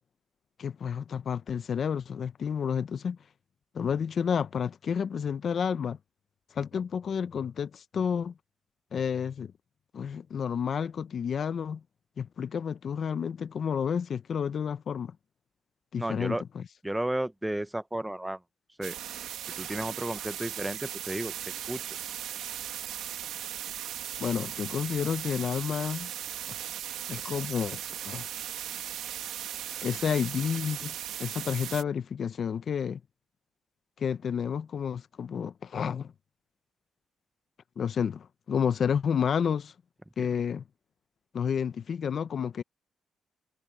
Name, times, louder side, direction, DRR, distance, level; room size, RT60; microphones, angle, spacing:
voice 1, 0.6-3.2 3.7-6.0 6.5-8.3 8.9-9.5 9.9-11.8 12.2-15.2 15.9-16.6 24.2-26.1 26.5-26.6 27.1-28.2 29.8-30.9 31.2-33.0 34.0-36.1 37.8-39.7 40.2-40.6 41.3-42.6, left 7 dB, 50° left, 0.7 m, -30 dB
voice 2, 16.0-16.4 16.8-18.4 18.8-18.9 19.6-21.3 21.7-21.8, right 1 dB, 10° right, 0.7 m, -32 dB
sound 1, 18.8-31.8, right 11 dB, 85° right, 2.0 m, -37 dB
cardioid pair, 110°, 0 cm